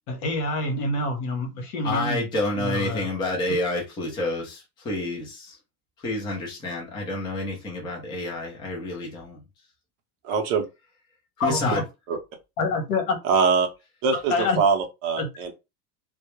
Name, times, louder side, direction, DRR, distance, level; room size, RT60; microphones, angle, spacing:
voice 1, 0.1-2.3 2.6-3.1 11.4-11.8 12.6-13.2 14.3-14.6 15.2-15.3, left 2 dB, 75° left, 1.0 m, -26 dB
voice 2, 1.8-5.6 6.0-9.4 11.4-11.8, left 2 dB, 10° left, 0.4 m, -29 dB
voice 3, 10.2-10.6 12.1-12.2 13.2-13.7 14.0-15.5, right 5 dB, 45° right, 0.5 m, -23 dB
2.2 x 2.0 x 3.0 m
supercardioid pair, 155°, 46 cm